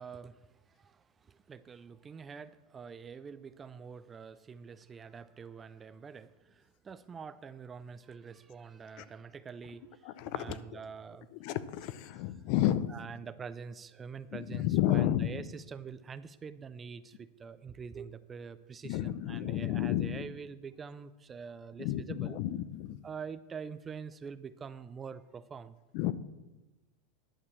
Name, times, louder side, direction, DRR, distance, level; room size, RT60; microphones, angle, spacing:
voice 1, 0.0-11.3 12.9-22.4 23.0-25.8, right 6 dB, 20° right, 14 dB, 0.4 m, -45 dB
voice 2, 10.0-10.6 11.3-12.9 14.3-15.4 18.8-20.3 21.8-23.0 25.9-26.1, left 13 dB, 55° left, 15 dB, 0.5 m, -31 dB
11.0 x 4.9 x 7.4 m, 1.1 s
supercardioid pair, 140°, 0 cm